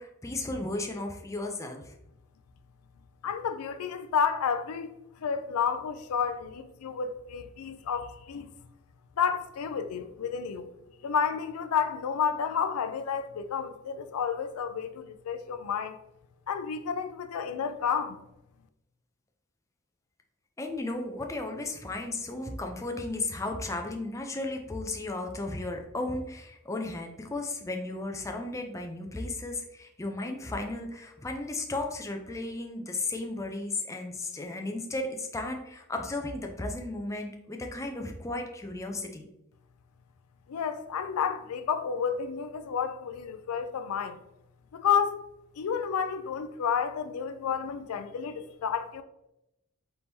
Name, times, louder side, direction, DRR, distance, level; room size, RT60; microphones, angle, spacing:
voice 1, 0.0-1.9 20.6-39.2, left 2 dB, 15° left, 0.4 m, -35 dB
voice 2, 3.2-4.9 5.2-8.5 9.2-10.7 11.0-16.0 16.5-18.2 40.5-44.2 44.7-45.2 45.6-49.0, left 7 dB, 85° left, 0.4 m, -30 dB
4.4 x 3.6 x 2.6 m
head